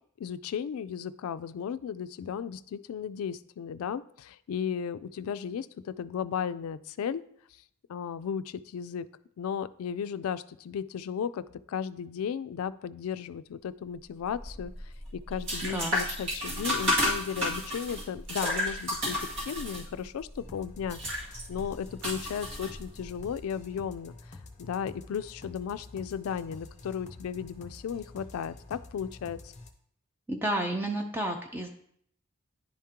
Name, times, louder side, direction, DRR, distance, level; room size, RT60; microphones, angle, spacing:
voice 1, 0.2-7.2 7.9-9.1 9.4-29.5, left 7 dB, 75° left, 13 dB, 0.3 m, -35 dB
sound 1, 14.3-23.2, left 1 dB, 60° right, 2.5 m, -32 dB
sound 2, 20.4-29.7, left 2 dB, 35° left, 0.8 m, -48 dB
voice 2, 30.3-31.7, right 1 dB, 10° right, 2 dB, 0.5 m, -31 dB
10.5 x 3.6 x 2.9 m, 0.67 s
head